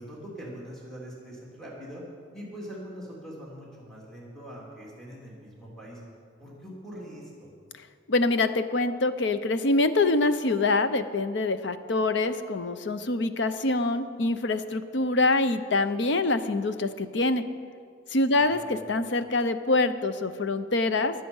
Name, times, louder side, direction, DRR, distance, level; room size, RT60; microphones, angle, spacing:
voice 1, 0.0-2.0 2.3-6.0 6.4-7.5 18.3-18.7, equal, 5° left, -5 dB, 2.9 m, -42 dB
voice 2, 8.1-17.4 18.1-21.1, left 2 dB, 65° left, 11 dB, 0.7 m, -25 dB
22.0 x 7.6 x 5.5 m, 2.1 s
head